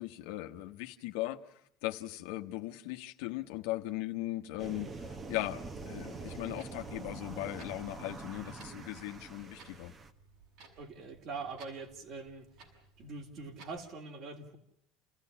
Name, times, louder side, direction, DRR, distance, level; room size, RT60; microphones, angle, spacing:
voice 1, 0.0-1.4 1.8-9.9, left 17 dB, 85° left, 5 dB, 1.2 m, -38 dB
sound 1, 4.6-10.1, right 4 dB, 25° right, 1.4 m, -45 dB
Clock, 6.3-13.9, right 3 dB, 70° right, 7.0 m, -59 dB
voice 2, 10.8-12.5 13.0-14.6, right 4 dB, 45° right, 6 dB, 3.1 m, -43 dB
29.0 x 15.5 x 10.0 m, 0.75 s
cardioid pair, 140°, 0 cm